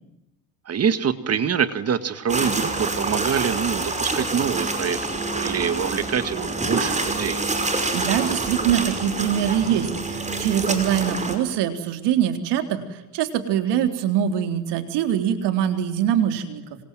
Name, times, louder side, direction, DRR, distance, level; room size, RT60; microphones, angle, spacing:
voice 1, 0.7-5.0 5.3-7.4, right 7 dB, 35° right, 11 dB, 2.0 m, -25 dB
sound 1, 2.3-11.4, right 3 dB, 15° right, 5.5 m, -27 dB
voice 2, 7.9-16.6, right 10 dB, 75° right, 7 dB, 3.9 m, -23 dB
27.0 x 27.0 x 7.7 m, 0.93 s
cardioid pair, 115°, 42 cm